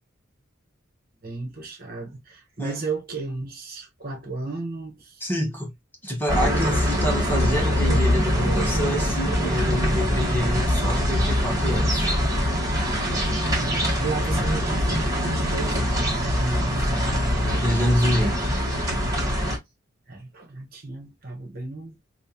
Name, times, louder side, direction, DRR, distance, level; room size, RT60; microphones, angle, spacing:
voice 1, 1.2-5.2 13.6-16.9 20.1-22.0, right 3 dB, 45° right, 1.2 m, -34 dB
voice 2, 5.2-5.7 6.0-12.1 17.6-18.4, equal, 10° left, 1.1 m, -26 dB
sound 1, 6.3-19.6, equal, 15° right, 1.4 m, -23 dB
5.5 x 2.4 x 2.8 m
head